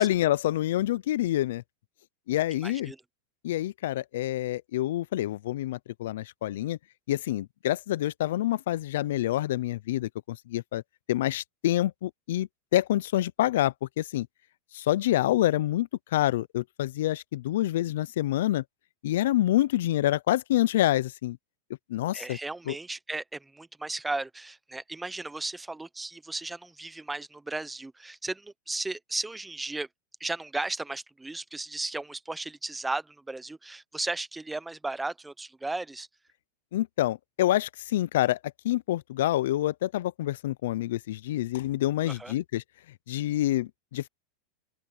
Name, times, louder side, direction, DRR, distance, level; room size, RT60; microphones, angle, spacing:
voice 1, 0.0-1.6 2.3-2.9 3.4-6.8 7.1-10.8 11.1-14.3 14.7-18.6 19.0-21.4 21.9-22.4 22.7-22.8 36.7-38.4 38.6-42.6 43.1-44.1, left 14 dB, 70° left, 0.4 m, -27 dB
voice 2, 2.6-3.0 22.1-29.9 30.2-36.1 42.1-42.3, right 2 dB, 5° right, 0.7 m, -35 dB
open air
supercardioid pair, 160°, 0 cm